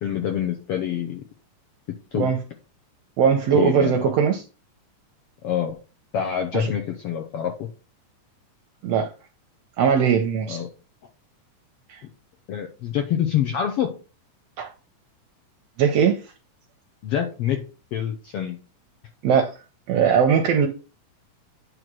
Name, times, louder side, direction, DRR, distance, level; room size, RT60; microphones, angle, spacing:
voice 1, 0.0-1.2 2.1-2.3 3.5-4.1 5.4-5.8 6.1-7.7 10.5-10.7 12.5-13.9 17.0-17.6 17.9-18.6, left 9 dB, 75° left, 1.4 m, -26 dB
voice 2, 3.2-4.4 6.5-6.7 8.8-9.1 9.8-10.6 11.9-12.0 14.6-14.7 15.8-16.2 19.2-19.5 19.9-20.7, right 7 dB, 75° right, 1.5 m, -20 dB
9.1 x 3.2 x 6.1 m
omnidirectional pair, 3.7 m